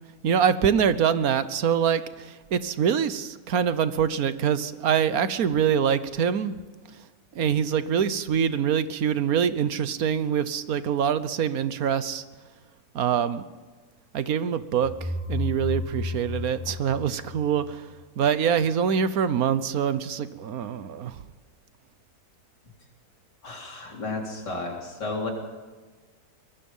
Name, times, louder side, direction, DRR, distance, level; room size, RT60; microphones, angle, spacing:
voice 1, 0.2-6.5 7.3-12.2 12.9-13.4 14.1-17.8 18.2-21.2, right 8 dB, 60° right, 14 dB, 1.4 m, -24 dB
sound 1, 14.8-17.7, left 2 dB, 15° left, 5.1 m, -32 dB
voice 2, 23.4-25.3, left 3 dB, 85° left, 0 dB, 4.6 m, -32 dB
24.0 x 20.0 x 5.6 m, 1.4 s
omnidirectional pair, 1.8 m